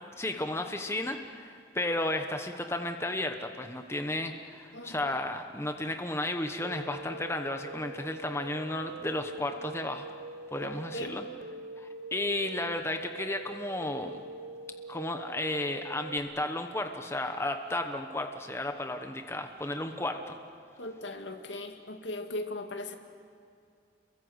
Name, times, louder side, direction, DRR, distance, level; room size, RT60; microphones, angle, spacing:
voice 1, 0.2-10.1 10.5-11.2 11.8-14.2 14.9-20.4, left 1 dB, 15° left, 5 dB, 1.1 m, -33 dB
voice 2, 4.7-5.1 10.6-11.2 20.8-23.0, left 1 dB, 70° left, 5 dB, 2.3 m, -38 dB
sound 1, 6.6-16.2, right 2 dB, 85° right, 0.9 m, -44 dB
28.5 x 22.5 x 8.1 m, 2.4 s
head